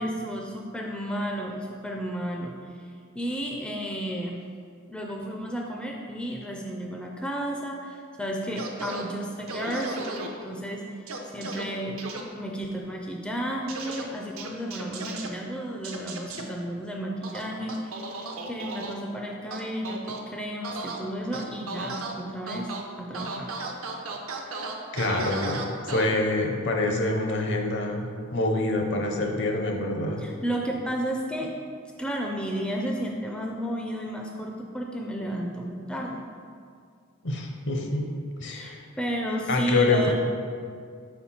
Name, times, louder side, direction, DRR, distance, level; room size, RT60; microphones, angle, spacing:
voice 1, 0.0-4.4 4.9-10.1 10.4-11.0 11.3-12.0 12.4-18.2 18.5-22.7 23.0-23.6 30.2-31.5 32.0-36.2 38.5-40.1, right 1 dB, 5° left, 0 dB, 0.4 m, -32 dB
sound 1, 8.6-9.0 9.5-10.3 11.1-11.6 12.0-12.2 13.7-14.0 14.4-15.3 15.8-16.4 17.2-18.9 19.5-20.2 20.6-21.0 21.3-22.1 22.5-22.8 23.1-26.0, right 3 dB, 75° right, 0.7 m, -35 dB
voice 2, 24.9-30.2 37.2-38.1 38.4-38.8 39.5-40.1, left 2 dB, 55° left, 2 dB, 0.7 m, -26 dB
4.4 x 4.3 x 5.6 m, 2.2 s
head